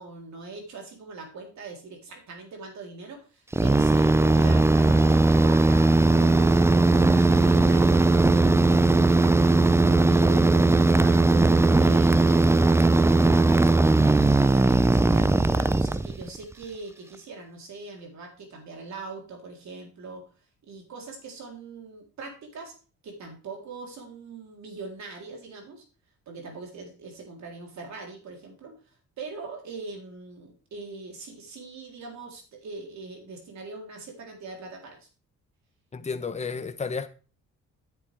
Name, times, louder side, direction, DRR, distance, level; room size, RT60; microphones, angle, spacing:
voice 1, 0.0-12.5 14.0-20.2 20.6-22.7 23.0-25.8 26.3-35.1, right 3 dB, 65° right, 3.8 m, -42 dB
sound 1, 3.5-16.4, right 2 dB, 10° right, 0.4 m, -19 dB
voice 2, 35.9-37.1, left 5 dB, 20° left, 1.0 m, -32 dB
10.0 x 8.6 x 3.5 m
cardioid pair, 90°, 30 cm